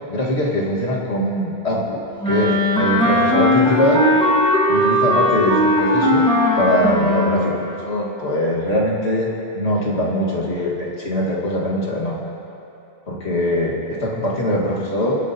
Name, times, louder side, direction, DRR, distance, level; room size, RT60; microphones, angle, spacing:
voice 1, 0.1-2.0 2.3-4.0 4.7-6.3 6.6-9.3 9.5-12.2 13.1-15.2, left 1 dB, 90° left, -4 dB, 1.9 m, -22 dB
Wind instrument woodwind instrument, 2.2-7.5, left 1 dB, 5° left, 1.3 m, -18 dB
21.5 x 8.3 x 2.8 m, 2.8 s
omnidirectional pair, 1.1 m